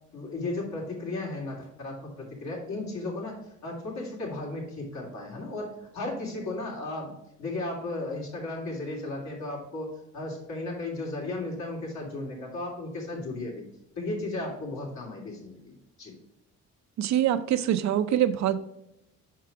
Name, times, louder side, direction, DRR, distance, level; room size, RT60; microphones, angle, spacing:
voice 1, 0.1-13.6 13.9-15.7 16.0-16.1, left 2 dB, 65° left, -2 dB, 2.8 m, -35 dB
voice 2, 17.0-18.6, right 11 dB, 65° right, 10 dB, 0.5 m, -24 dB
5.9 x 4.6 x 4.7 m, 0.85 s
cardioid pair, 90°, 30 cm